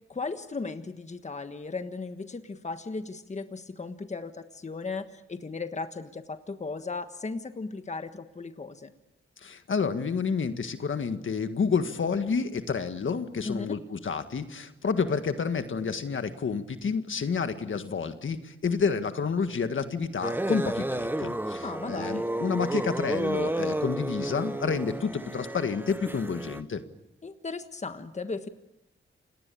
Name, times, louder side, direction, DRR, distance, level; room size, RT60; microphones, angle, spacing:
voice 1, 0.1-8.9 13.4-13.8 21.6-22.3 27.2-28.5, left 3 dB, 35° left, 8 dB, 1.4 m, -36 dB
voice 2, 9.4-26.8, left 5 dB, 70° left, 9 dB, 1.7 m, -29 dB
sound 1, 20.2-26.6, right 1 dB, 10° right, 1.0 m, -31 dB
28.5 x 19.5 x 8.6 m, 0.94 s
wide cardioid pair, 100°, 21 cm